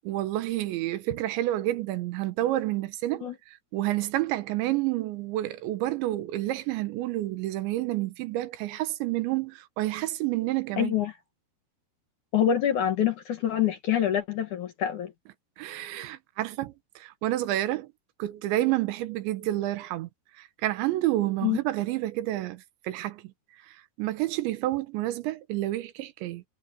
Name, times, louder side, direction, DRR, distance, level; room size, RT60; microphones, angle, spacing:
voice 1, 0.1-10.9 15.6-17.9 18.2-20.1 20.4-23.3 23.7-26.4, right 15 dB, 85° right, 3.4 m, -29 dB
voice 2, 10.8-11.1 12.3-15.1 21.4-21.6, left 10 dB, 60° left, 2.2 m, -26 dB
omnidirectional pair, 5.2 m